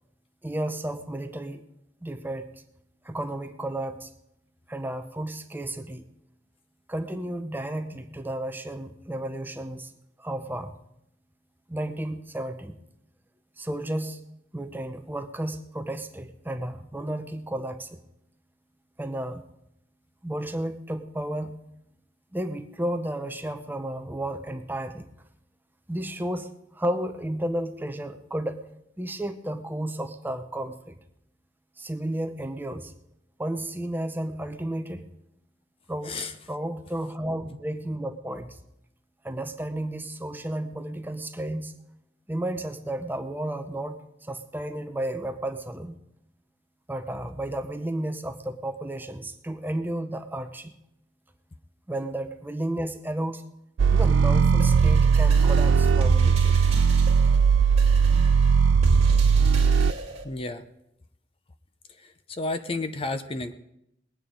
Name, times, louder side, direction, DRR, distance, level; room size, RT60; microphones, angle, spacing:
voice 1, 0.4-1.6 2.0-2.5 3.0-4.1 4.7-6.1 6.9-9.9 10.2-10.8 11.7-12.8 13.6-14.2 14.5-18.0 19.0-19.4 20.2-21.6 22.3-25.1 25.9-28.7 29.0-31.0 31.8-32.9 33.4-35.0 35.9-36.2 36.5-38.6 39.2-41.7 42.3-46.0 46.9-50.7 51.9-53.4 53.9-56.6, right 1 dB, 10° right, 8 dB, 0.7 m, -32 dB
sound 1, 53.8-59.9, right 6 dB, 90° right, 0.4 m, -19 dB
sound 2, 54.6-60.2, right 1 dB, 35° right, 2.0 m, -34 dB
voice 2, 60.2-60.6 62.0-63.5, left 2 dB, 30° left, 10 dB, 0.6 m, -32 dB
20.5 x 9.1 x 5.1 m, 0.81 s
head